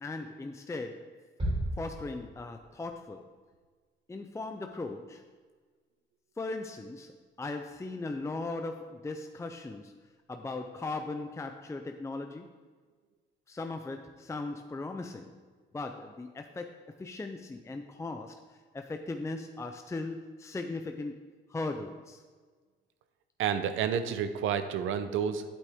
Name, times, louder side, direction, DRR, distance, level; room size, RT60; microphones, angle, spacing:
voice 1, 0.0-1.1 1.8-3.3 4.1-5.2 6.4-7.1 7.4-9.9 10.3-12.5 13.5-15.3 15.7-18.4 18.7-21.2 21.5-22.2, left 3 dB, 15° left, 5 dB, 0.5 m, -38 dB
sound 1, 1.4-2.8, right 1 dB, 30° right, 2.9 m, -34 dB
voice 2, 23.4-25.4, right 8 dB, 85° right, 10 dB, 0.7 m, -30 dB
8.5 x 8.2 x 3.6 m, 1.5 s
cardioid pair, 90°, 20 cm